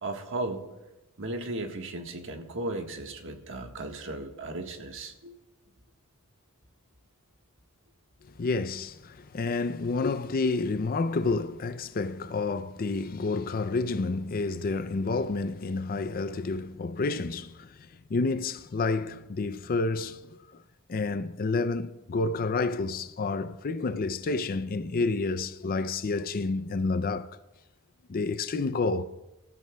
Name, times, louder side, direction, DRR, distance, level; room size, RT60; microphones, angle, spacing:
voice 1, 0.0-0.6 1.2-5.3, right 2 dB, 60° right, 1.4 m, -35 dB
voice 2, 8.4-17.8 18.1-20.6 20.9-27.3 28.1-29.0, left 3 dB, 40° left, 0.4 m, -29 dB
26.0 x 14.0 x 2.3 m
head